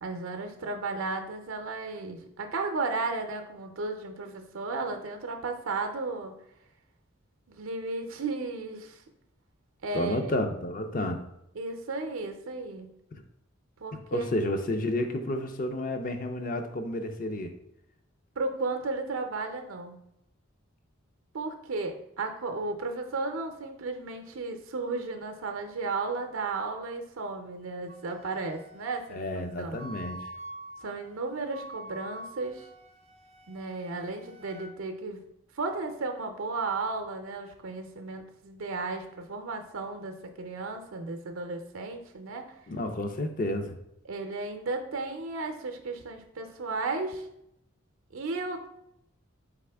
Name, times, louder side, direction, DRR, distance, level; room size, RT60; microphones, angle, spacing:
voice 1, 0.0-6.3 7.5-9.0 9.8-10.3 11.5-12.9 13.8-14.3 18.4-20.0 21.3-29.2 29.6-29.8 30.8-32.7 33.5-35.2 35.5-42.5 44.0-47.3 48.1-48.7, right 3 dB, 80° right, 5 dB, 0.5 m, -34 dB
voice 2, 9.9-11.2 13.1-13.2 14.1-17.5 29.1-30.3 42.7-43.8, left 1 dB, 40° left, 6 dB, 0.4 m, -31 dB
Wind instrument woodwind instrument, 27.9-34.7, right 1 dB, 30° right, 0.4 m, -46 dB
4.2 x 3.6 x 3.3 m, 0.80 s
head